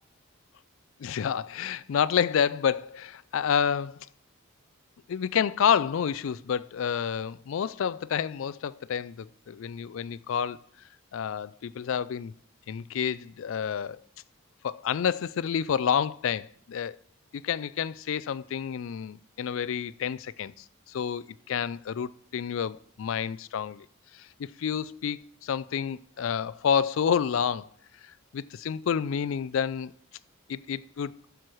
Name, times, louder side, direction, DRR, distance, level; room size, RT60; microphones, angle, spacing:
voice 1, 1.0-4.0 5.1-10.6 11.1-12.3 12.7-14.0 14.6-17.0 17.3-23.9 24.1-27.7 28.3-29.9 30.5-31.1, left 7 dB, 60° left, 0.3 m, -29 dB
12.5 x 4.6 x 6.2 m
head